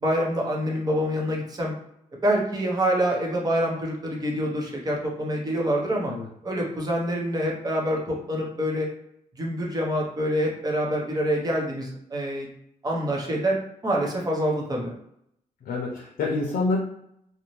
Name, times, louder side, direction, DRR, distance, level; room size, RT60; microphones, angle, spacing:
voice 1, 0.0-1.7 2.2-6.1 6.4-8.9 9.4-12.5 12.8-13.6 13.8-14.9, equal, 25° right, -2 dB, 0.7 m, -26 dB
voice 2, 15.7-16.8, left 3 dB, 75° left, -3 dB, 0.5 m, -27 dB
2.6 x 2.1 x 3.0 m, 0.74 s
wide cardioid pair, 145°, 15 cm